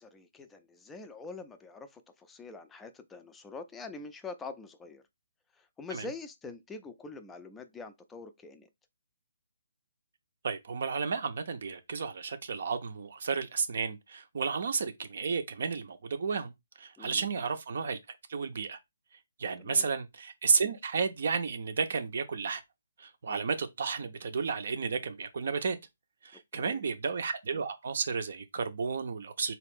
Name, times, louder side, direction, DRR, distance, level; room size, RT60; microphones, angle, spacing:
voice 1, 0.0-5.0 5.5-8.7 17.0-17.3 19.6-19.9 26.3-26.8, left 4 dB, 10° left, 0.4 m, -45 dB
voice 2, 10.4-18.0 18.3-18.8 19.4-22.6 23.0-25.8 26.2-29.5, right 5 dB, 50° right, 0.5 m, -32 dB
4.0 x 2.4 x 3.6 m
figure-of-eight pair, 135°, 0 cm